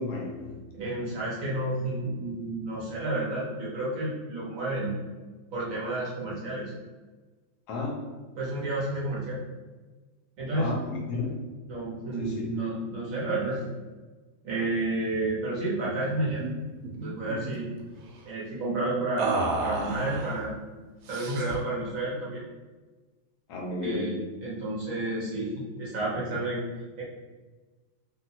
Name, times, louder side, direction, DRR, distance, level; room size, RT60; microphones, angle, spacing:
voice 1, 0.0-0.6 7.7-7.9 10.5-11.4 12.2-12.5 23.5-24.2, left 3 dB, 70° left, -2 dB, 1.0 m, -33 dB
voice 2, 0.7-5.0 5.5-6.7 8.4-9.4 10.4-10.8 11.7-13.6 14.4-16.4 16.9-17.7 18.3-19.3 19.6-20.6 21.1-22.4 23.8-26.6 27.0-27.1, right 2 dB, 55° right, -7 dB, 0.9 m, -31 dB
sound 1, 15.8-16.0 16.3-16.5 16.8-17.6 19.2-20.4 21.1-21.7, right 3 dB, 80° right, 1.3 m, -31 dB
3.0 x 2.7 x 2.7 m, 1.3 s
omnidirectional pair, 2.2 m